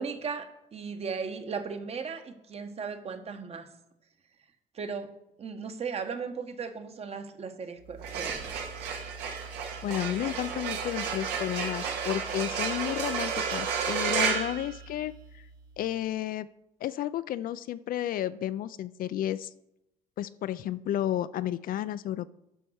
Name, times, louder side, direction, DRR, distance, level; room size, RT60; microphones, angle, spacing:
voice 1, 0.0-3.7 4.7-5.1 5.4-8.5, right 5 dB, 35° right, 8 dB, 1.1 m, -36 dB
sound 1, 7.9-15.4, right 6 dB, 90° right, 1.8 m, -32 dB
voice 2, 9.8-15.4 15.8-16.5 16.8-19.5 20.2-22.3, left 12 dB, 55° left, 16 dB, 0.4 m, -32 dB
10.0 x 5.3 x 6.3 m, 0.88 s
cardioid pair, 110°, 17 cm